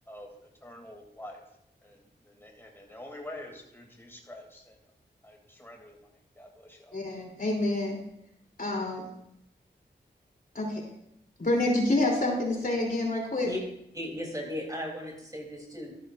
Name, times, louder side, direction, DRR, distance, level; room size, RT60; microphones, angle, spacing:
voice 1, 0.1-1.4 1.8-4.8 5.2-7.0, left 1 dB, 10° left, 0 dB, 2.8 m, -47 dB
voice 2, 6.9-8.0 8.6-9.1 10.5-10.8 11.4-13.5, left 2 dB, 50° left, -1 dB, 3.3 m, -27 dB
voice 3, 13.9-16.0, left 1 dB, 20° right, 0 dB, 3.4 m, -36 dB
13.0 x 10.5 x 2.6 m, 0.78 s
cardioid pair, 45°, 19 cm